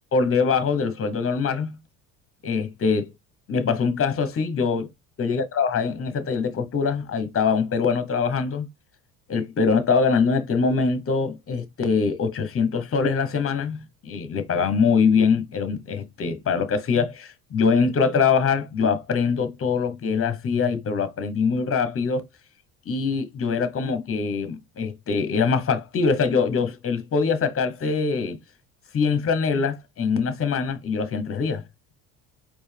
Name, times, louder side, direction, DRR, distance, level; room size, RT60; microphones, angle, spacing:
voice 1, 0.1-1.8 2.4-3.1 3.5-4.9 5.2-8.7 9.3-22.3 22.9-28.4 28.9-31.6, left 5 dB, 35° left, 1.1 m, -23 dB
4.5 x 2.5 x 3.5 m
supercardioid pair, 90°, 39 cm